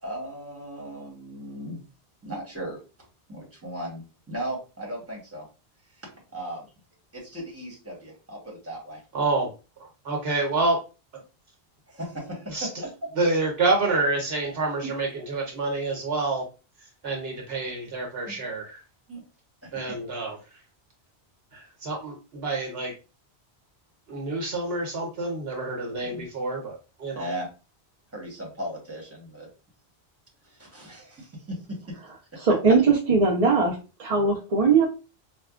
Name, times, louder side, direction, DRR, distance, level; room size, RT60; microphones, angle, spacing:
voice 1, 0.0-1.8 2.2-2.8 3.3-5.5 6.3-6.7 7.1-9.0 11.9-12.7 14.8-14.9 18.3-18.4 19.1-19.2 26.0-26.3 27.1-27.5 28.1-29.5 30.4-31.8 32.3-32.4, right 1 dB, 15° right, -2 dB, 1.2 m, -37 dB
voice 2, 9.1-9.5 10.0-10.8 12.5-12.7 13.2-16.4 17.0-18.8 19.7-20.4 21.5-22.9 24.1-27.3, right 3 dB, 70° right, 1 dB, 1.2 m, -27 dB
voice 3, 32.4-34.9, right 4 dB, 45° right, -2 dB, 0.6 m, -20 dB
4.5 x 2.2 x 2.4 m, 0.32 s
omnidirectional pair, 1.1 m